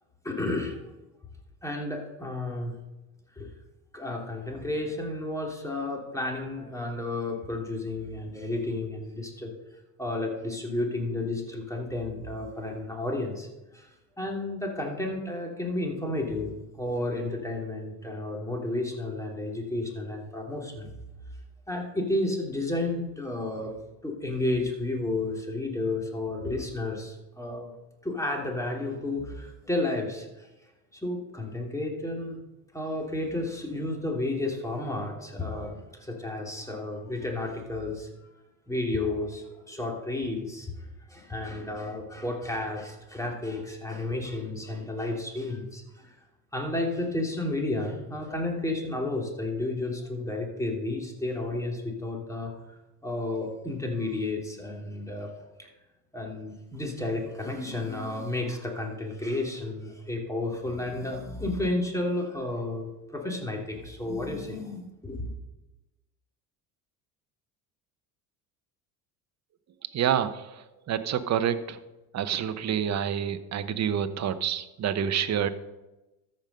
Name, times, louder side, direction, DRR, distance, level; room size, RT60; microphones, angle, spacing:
voice 1, 0.2-0.8 1.6-2.7 3.3-3.5 3.9-9.5 10.0-13.5 13.7-13.9 14.2-20.9 21.7-23.7 24.0-27.7 28.0-30.5 30.9-32.4 32.7-38.1 38.7-46.1 46.5-52.5 53.0-55.3 55.6-55.7 56.1-65.3, left 2 dB, 5° left, 0 dB, 2.8 m, -32 dB
voice 2, 69.9-70.5 70.9-71.8 72.1-75.5, right 9 dB, 40° right, 11 dB, 0.8 m, -27 dB
13.5 x 5.3 x 5.5 m, 1.0 s
supercardioid pair, 75°, 43 cm